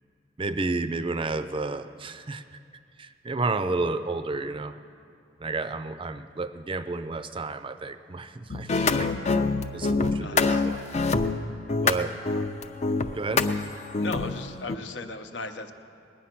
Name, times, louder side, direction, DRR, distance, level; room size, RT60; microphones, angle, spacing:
voice 1, 0.4-2.5 3.0-4.8 5.4-9.1 9.7-10.8 11.8-12.2 13.1-13.5, right 3 dB, 30° right, 11 dB, 0.5 m, -31 dB
sound 1, 8.5-14.8, left 4 dB, 40° left, 0.5 m, -25 dB
voice 2, 10.2-10.6 14.0-15.7, left 3 dB, 75° left, 7 dB, 0.8 m, -37 dB
20.0 x 9.2 x 6.0 m, 2.4 s
head